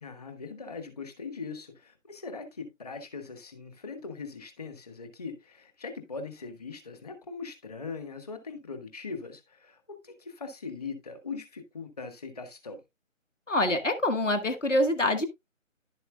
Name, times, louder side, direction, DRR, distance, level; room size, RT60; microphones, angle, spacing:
voice 1, 0.0-12.8, left 4 dB, 30° left, 1.6 m, -40 dB
voice 2, 13.5-15.3, left 1 dB, 65° left, 1.8 m, -25 dB
11.0 x 7.9 x 2.4 m
figure-of-eight pair, 155°, 40 cm